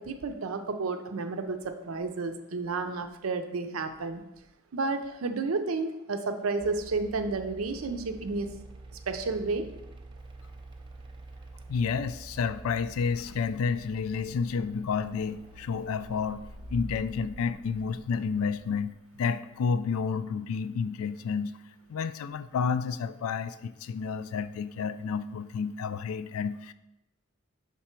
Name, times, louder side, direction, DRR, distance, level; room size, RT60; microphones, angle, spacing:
voice 1, 0.0-4.2 4.7-8.5 9.1-9.7, right 3 dB, 90° right, 8 dB, 0.6 m, -31 dB
sound 1, 6.6-18.9, right 2 dB, 20° right, 0.4 m, -47 dB
voice 2, 11.7-16.4 16.7-18.9 19.2-21.5 21.9-26.7, left 5 dB, 85° left, 14 dB, 0.3 m, -30 dB
5.9 x 3.6 x 4.4 m, 0.93 s
head